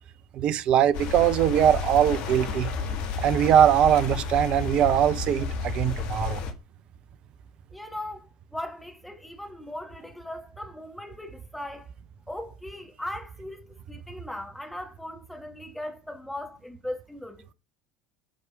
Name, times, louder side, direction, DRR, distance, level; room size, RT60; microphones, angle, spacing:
voice 1, 0.3-2.7 3.2-6.4, right 10 dB, 50° right, 0.8 m, -21 dB
sound 1, 0.9-6.5, left 5 dB, 55° left, 1.9 m, -31 dB
voice 2, 7.7-11.9 12.3-17.5, left 1 dB, 5° left, 2.4 m, -38 dB
9.3 x 4.9 x 5.2 m
figure-of-eight pair, 70°, 2 cm